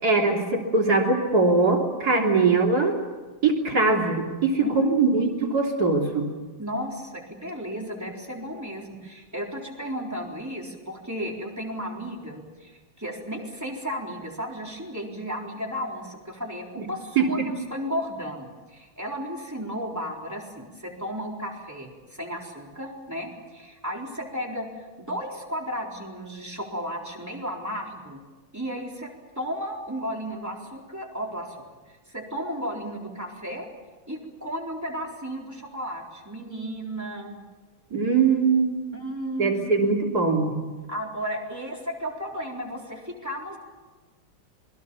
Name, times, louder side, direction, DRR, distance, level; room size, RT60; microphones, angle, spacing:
voice 1, 0.0-2.9 3.4-6.3 17.2-17.5 37.9-38.8 39.4-40.6, right 3 dB, 50° right, 1 dB, 3.8 m, -22 dB
voice 2, 2.2-2.5 4.6-4.9 6.6-28.2 28.5-29.1 29.4-31.6 32.1-33.7 34.1-37.4 38.9-40.0 40.9-43.6, equal, 10° right, -1 dB, 4.0 m, -34 dB
26.5 x 22.0 x 7.1 m, 1.3 s
omnidirectional pair, 2.2 m